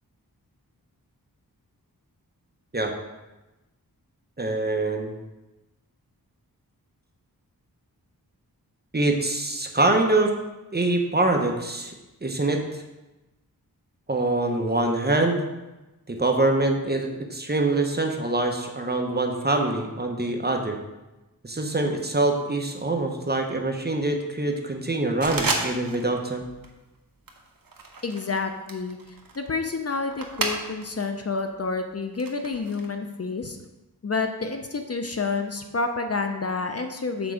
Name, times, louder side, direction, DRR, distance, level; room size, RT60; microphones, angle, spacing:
voice 1, 4.4-5.1 8.9-10.3 10.7-11.9 12.2-12.8 14.1-15.5 16.1-20.8 21.4-26.5, right 2 dB, 25° right, 3 dB, 0.9 m, -24 dB
sound 1, 25.2-26.1 26.4-26.8 27.3-31.0 31.4-32.9, right 3 dB, 65° right, 1.1 m, -32 dB
voice 2, 28.0-29.0 29.4-33.6 34.0-37.3, left 4 dB, 40° left, 6 dB, 0.6 m, -29 dB
6.1 x 4.5 x 6.4 m, 1.0 s
wide cardioid pair, 90°, 38 cm